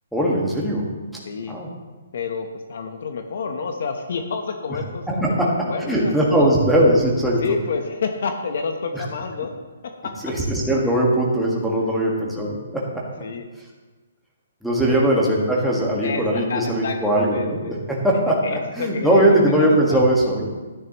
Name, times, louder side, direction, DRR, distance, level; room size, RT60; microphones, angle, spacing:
voice 1, 0.1-0.9 1.5-1.7 5.1-5.5 5.9-7.4 8.9-9.0 10.2-13.0 14.6-20.5, right 1 dB, ahead, -5 dB, 1.6 m, -20 dB
voice 2, 1.2-1.6 2.1-6.5 7.4-9.6 10.0-10.1 13.2-13.4 14.9-15.1 16.0-17.8 18.4-20.2, left 5 dB, 60° left, 5 dB, 1.0 m, -29 dB
12.5 x 10.0 x 3.0 m, 1.3 s
hypercardioid pair, 160°, 0 cm